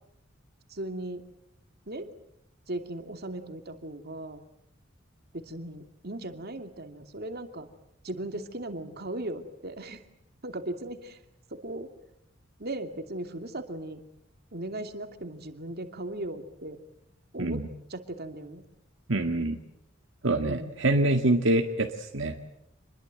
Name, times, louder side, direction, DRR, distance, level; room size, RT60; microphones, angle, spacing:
voice 1, 0.7-1.2 1.9-2.1 2.7-4.4 5.3-7.7 8.0-10.0 10.4-11.2 11.5-11.9 12.6-14.0 14.5-16.8 17.3-17.6 17.9-18.6 20.4-20.9, right 1 dB, 55° right, 7 dB, 2.6 m, -37 dB
voice 2, 19.1-19.6 20.2-22.4, right 2 dB, 70° right, 4 dB, 1.9 m, -25 dB
27.5 x 21.5 x 7.8 m, 0.79 s
head